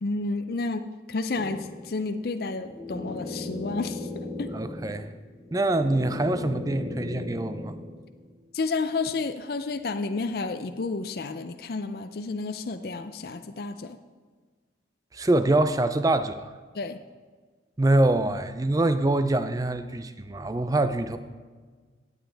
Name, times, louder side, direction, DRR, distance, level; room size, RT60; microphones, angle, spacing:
voice 1, 0.0-4.5 8.5-14.0 16.7-17.0, left 3 dB, 55° left, 9 dB, 0.5 m, -31 dB
sound 1, 1.3-8.3, left 2 dB, 5° right, 0.9 m, -37 dB
voice 2, 4.5-5.1 5.5-7.8 15.1-16.5 17.8-21.2, right 2 dB, 20° right, 11 dB, 0.4 m, -24 dB
16.5 x 9.1 x 3.4 m, 1.5 s
head